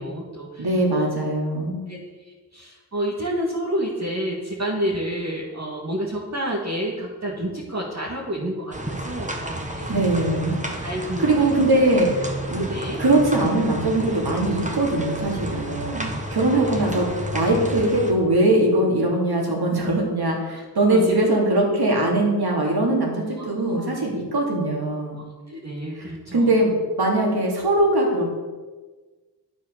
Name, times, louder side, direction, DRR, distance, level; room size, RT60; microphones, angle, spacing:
voice 1, 0.0-0.7 0.9-1.1 1.9-2.0 2.5-10.0 10.8-11.3 12.6-13.0 16.7-16.8 20.5-20.6 20.9-21.2 23.4-23.5 23.7-23.9 25.5-26.6, equal, 45° right, -4 dB, 2.2 m, -29 dB
voice 2, 0.6-1.9 9.9-10.5 11.2-12.6 13.0-25.2 25.9-26.7 27.0-28.3, right 1 dB, 75° right, -1 dB, 3.2 m, -21 dB
Rain dripping water and distant thunder, 8.7-18.1, right 1 dB, 20° right, 1.8 m, -31 dB
10.0 x 8.6 x 6.9 m, 1.3 s
wide cardioid pair, 75°, 39 cm